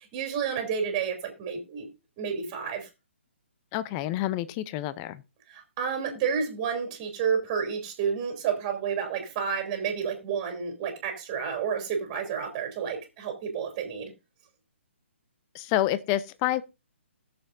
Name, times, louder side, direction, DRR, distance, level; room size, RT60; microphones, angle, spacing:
voice 1, 0.0-1.9 2.2-2.9 5.5-14.1, right 7 dB, 25° right, 2.9 m, -30 dB
voice 2, 3.7-5.2 15.5-16.6, left 14 dB, 25° left, 0.5 m, -28 dB
20.0 x 6.9 x 2.6 m
hypercardioid pair, 145°, 7 cm